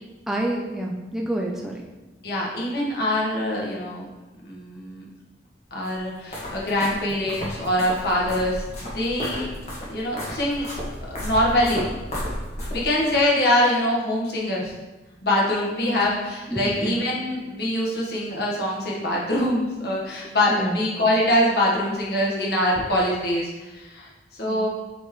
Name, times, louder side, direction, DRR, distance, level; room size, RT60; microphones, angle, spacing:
voice 1, 0.3-1.8 15.8-16.1 16.5-17.0 20.5-20.8 24.5-24.7, right 1 dB, ahead, -1 dB, 0.5 m, -28 dB
voice 2, 2.2-4.1 4.4-5.0 5.7-9.5 9.9-10.7 11.1-11.9 12.7-14.7 15.2-24.7, left 1 dB, 60° left, -4 dB, 1.5 m, -24 dB
sound 1, 5.8-13.1, equal, 40° left, 1.9 m, -33 dB
7.9 x 4.6 x 3.2 m, 1.1 s
head